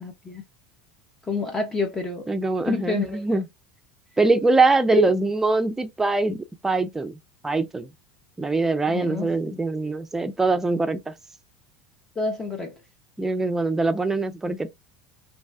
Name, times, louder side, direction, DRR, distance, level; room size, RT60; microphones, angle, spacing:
voice 1, 0.0-0.4 1.3-2.2 2.6-3.4 4.9-5.1 8.9-9.5 12.2-12.7, left 3 dB, 15° left, 0.7 m, -28 dB
voice 2, 2.3-3.5 4.2-6.4 6.6-7.2 7.4-7.9 8.4-11.1 13.2-14.7, right 3 dB, 10° right, 0.5 m, -23 dB
2.7 x 2.2 x 3.3 m
supercardioid pair, 100°, 3 cm